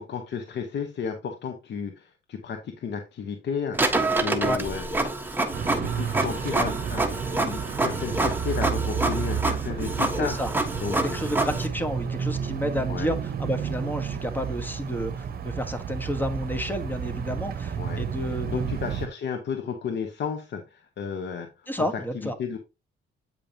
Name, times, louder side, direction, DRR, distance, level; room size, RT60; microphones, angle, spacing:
voice 1, 0.0-4.9 5.8-10.4 10.8-11.2 12.9-13.2 17.8-18.0 18.3-21.7 22.1-22.6, left 6 dB, 60° left, 1.2 m, -33 dB
Printer, 3.7-11.7, right 2 dB, 10° right, 1.4 m, -27 dB
sound 1, 5.5-19.1, right 7 dB, 50° right, 1.1 m, -31 dB
voice 2, 10.2-10.5 11.0-18.7 21.7-22.4, equal, 10° left, 1.4 m, -30 dB
8.8 x 5.1 x 2.9 m
cardioid pair, 90°, 20 cm